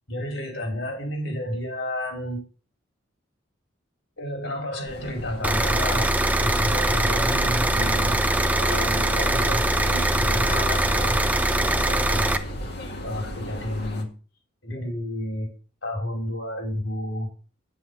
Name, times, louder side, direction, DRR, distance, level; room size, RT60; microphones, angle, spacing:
voice 1, 0.1-2.4 4.2-6.1 6.4-8.2 8.6-11.2 11.9-12.3 13.0-14.1 14.6-15.5 15.8-17.3, left 1 dB, 75° left, 2 dB, 4.4 m, -31 dB
sound 1, 4.9-14.0, left 1 dB, 60° left, 1.9 m, -38 dB
sound 2, 5.4-12.4, right 1 dB, 10° right, 0.7 m, -22 dB
Mechanical fan, 6.9-13.9, right 2 dB, 40° right, 0.8 m, -40 dB
9.1 x 7.8 x 5.6 m, 0.36 s
head